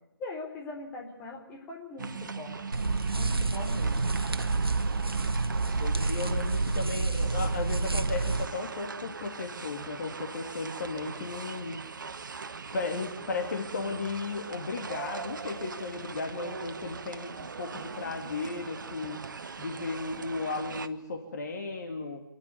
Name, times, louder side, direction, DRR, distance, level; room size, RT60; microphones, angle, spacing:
voice 1, 0.2-2.6 3.1-4.2, left 2 dB, 15° left, -1 dB, 4.0 m, -41 dB
sound 1, 2.0-20.9, right 5 dB, 55° right, 1.2 m, -40 dB
sound 2, 2.7-8.5, right 3 dB, 80° right, 1.1 m, -28 dB
voice 2, 5.4-11.8 12.7-19.2 19.6-22.2, left 3 dB, 45° left, 2 dB, 3.0 m, -35 dB
28.0 x 11.0 x 9.5 m, 0.83 s
figure-of-eight pair, 145°, 12 cm